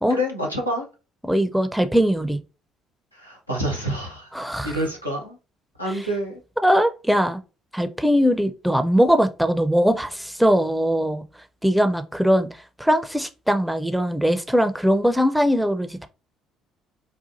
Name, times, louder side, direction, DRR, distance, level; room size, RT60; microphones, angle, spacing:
voice 1, 0.1-0.9 3.1-4.3 4.6-5.4 5.8-6.4, equal, 90° left, 0.7 m, -27 dB
voice 2, 1.2-2.4 4.3-4.8 5.9-6.0 6.6-7.4 7.7-11.2 11.6-12.5 12.8-16.1, equal, ahead, 0.5 m, -20 dB
4.0 x 2.4 x 2.5 m
figure-of-eight pair, 50°, 0 cm